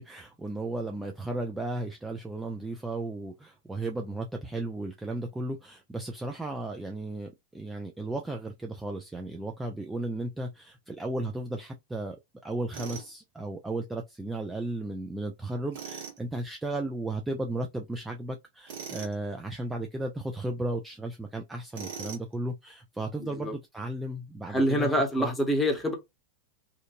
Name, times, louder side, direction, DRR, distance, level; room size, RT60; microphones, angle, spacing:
voice 1, 0.0-12.2 12.4-25.3, right 2 dB, 10° right, 0.4 m, -35 dB
Tools, 12.7-13.1 15.7-16.2 18.7-19.2 21.7-22.3, right 6 dB, 55° right, 1.3 m, -40 dB
voice 2, 23.2-23.5 24.5-25.9, equal, 10° left, 1.0 m, -26 dB
2.8 x 2.5 x 2.4 m
figure-of-eight pair, 90°, 0 cm